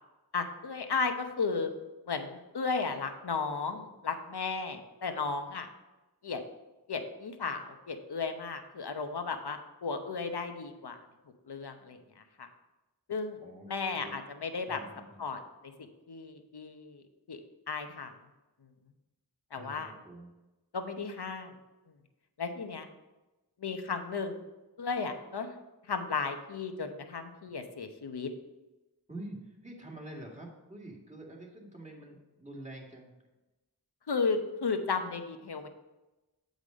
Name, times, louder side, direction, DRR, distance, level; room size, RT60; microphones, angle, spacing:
voice 1, 0.3-1.7 2.1-5.7 6.2-6.4 6.9-11.0 11.5-12.0 12.4-12.5 13.1-13.4 13.7-14.8 15.2-15.4 15.8-17.4 17.7-18.1 19.5-19.9 20.7-21.5 22.4-22.9 23.6-24.4 24.8-25.6 25.9-28.3 34.1-35.7, left 4 dB, 70° left, 6 dB, 0.9 m, -34 dB
voice 2, 13.4-14.2 14.6-15.3 19.5-20.3 29.1-33.1, right 1 dB, 15° right, -1 dB, 2.1 m, -47 dB
8.1 x 5.2 x 5.1 m, 1.1 s
wide cardioid pair, 50°, 40 cm